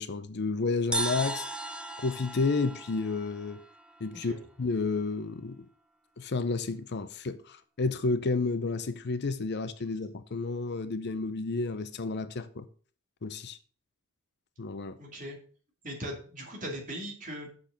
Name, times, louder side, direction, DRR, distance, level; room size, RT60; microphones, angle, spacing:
voice 1, 0.0-1.4 2.0-3.6 4.0-4.3 4.6-5.7 6.2-12.7 13.2-13.6 14.6-15.0, left 3 dB, 50° left, 0.6 m, -31 dB
sound 1, 0.9-4.4, right 2 dB, 5° right, 0.8 m, -37 dB
voice 2, 15.0-15.4 15.8-17.5, equal, 40° right, 2.5 m, -39 dB
6.7 x 6.1 x 5.7 m
head